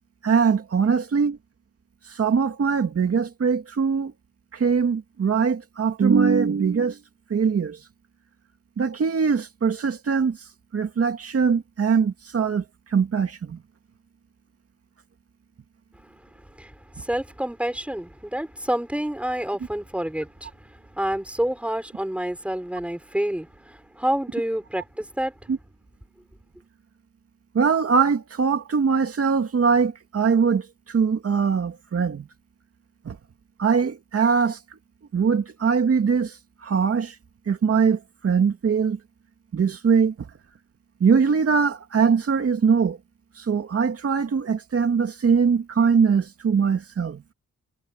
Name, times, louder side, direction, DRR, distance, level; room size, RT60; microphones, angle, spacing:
voice 1, 0.2-1.4 2.1-4.1 4.5-7.0 7.3-7.8 8.8-10.4 10.7-12.6 12.9-13.6 25.5-25.6 27.5-32.3 33.0-33.2 33.6-34.6 35.1-36.3 36.6-37.1 37.5-39.0 39.5-40.3 41.0-43.0 43.4-47.2, right 6 dB, 50° right, 2.4 m, -22 dB
voice 2, 16.5-25.3, right 1 dB, 5° right, 5.7 m, -28 dB
wide cardioid pair, 155°, 29 cm